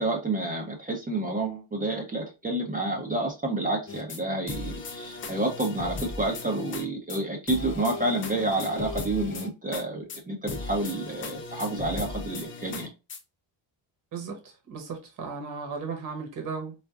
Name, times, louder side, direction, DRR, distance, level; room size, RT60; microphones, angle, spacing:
voice 1, 0.0-12.9, right 2 dB, 15° right, 0.7 m, -29 dB
sound 1, 3.9-4.2 4.5-6.8 7.1-7.2 7.5-9.8 10.1-10.2 10.5-13.2, left 4 dB, 30° left, 0.3 m, -37 dB
voice 2, 14.1-16.7, right 5 dB, 40° right, 1.0 m, -36 dB
4.4 x 2.4 x 2.4 m
cardioid pair, 150°, 49 cm